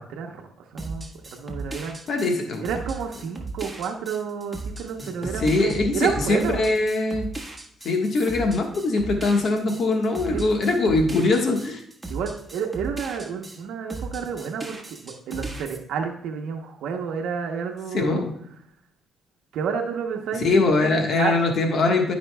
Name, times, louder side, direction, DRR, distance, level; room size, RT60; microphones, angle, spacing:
voice 1, 0.0-2.0 2.6-6.6 10.3-10.4 12.1-18.3 19.5-21.4, right 6 dB, 85° right, 2 dB, 0.9 m, -30 dB
sound 1, 0.8-13.6 13.9-15.8, right 2 dB, 15° right, 1.5 m, -36 dB
voice 2, 2.1-2.6 5.0-5.1 5.4-7.3 7.8-11.8 17.9-18.3 20.4-22.1, left 3 dB, 60° left, 3 dB, 1.4 m, -22 dB
13.5 x 5.2 x 2.3 m, 0.69 s
cardioid pair, 90°, 0 cm